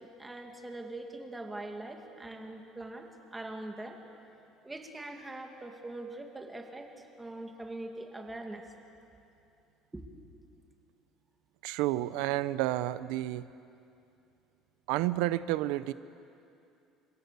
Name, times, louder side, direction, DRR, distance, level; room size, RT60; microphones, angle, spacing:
voice 1, 0.0-4.0 4.6-8.7 9.9-10.0, right 2 dB, 10° right, 3 dB, 2.5 m, -42 dB
voice 2, 11.6-13.5 14.9-15.9, right 15 dB, 80° right, 15 dB, 0.8 m, -30 dB
30.0 x 25.5 x 7.0 m, 2.7 s
cardioid pair, 150°, 0 cm